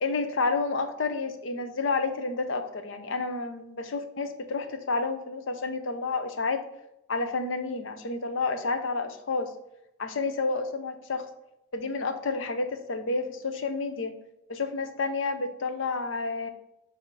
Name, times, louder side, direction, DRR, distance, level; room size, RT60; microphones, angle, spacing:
voice 1, 0.0-6.6 7.1-9.5 10.0-11.3 11.7-14.1 14.5-16.5, left 3 dB, 80° left, 8 dB, 0.7 m, -30 dB
7.5 x 2.8 x 4.7 m, 0.84 s
head